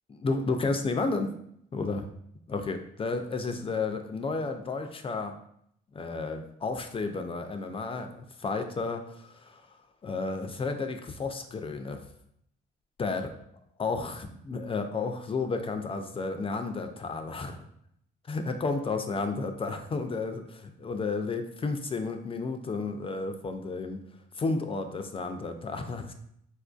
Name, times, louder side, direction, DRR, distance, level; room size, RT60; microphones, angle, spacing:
voice 1, 0.1-1.3 1.7-2.0 2.5-5.3 5.9-9.6 10.0-12.1 13.0-13.3 13.8-17.7 18.3-24.0 24.4-26.1, left 3 dB, 30° left, 7 dB, 0.3 m, -32 dB
4.2 x 2.5 x 2.3 m, 0.71 s
cardioid pair, 90°, 20 cm